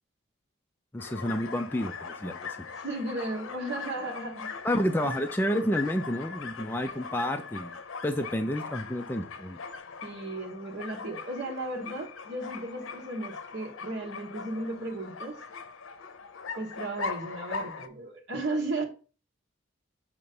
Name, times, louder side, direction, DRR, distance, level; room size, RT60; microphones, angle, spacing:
voice 1, 0.9-2.6 4.6-7.8 8.0-9.6, equal, 10° left, 5 dB, 0.3 m, -30 dB
sound 1, 1.0-17.9, left 5 dB, 80° left, 0.6 m, -40 dB
voice 2, 2.7-4.5 5.0-5.2 10.0-15.4 16.5-18.8, right 2 dB, 70° right, 0 dB, 1.2 m, -35 dB
6.6 x 2.9 x 5.3 m, 0.36 s
head